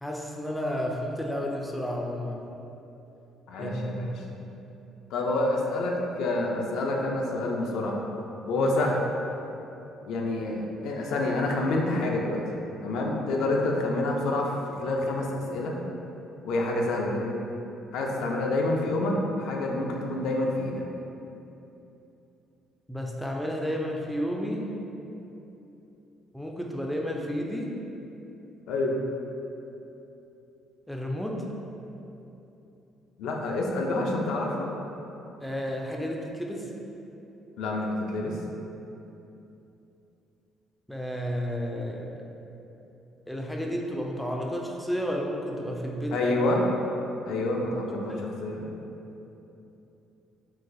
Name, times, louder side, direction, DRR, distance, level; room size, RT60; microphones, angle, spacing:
voice 1, 0.0-2.5 3.6-4.1 8.6-8.7 22.9-24.7 26.3-27.8 30.9-31.5 35.4-36.7 40.9-42.2 43.3-46.3 47.6-47.7 48.1-48.2, equal, 5° left, -1 dB, 0.3 m, -32 dB
voice 2, 3.5-4.2 5.1-8.0 8.5-9.0 10.1-12.4 12.8-15.7 16.4-17.3 17.9-20.8 28.7-29.0 33.2-34.7 37.6-38.4 46.1-46.6 47.2-48.7, left 2 dB, 75° left, 0 dB, 0.4 m, -28 dB
3.8 x 2.3 x 2.5 m, 2.9 s
cardioid pair, 90°, 0 cm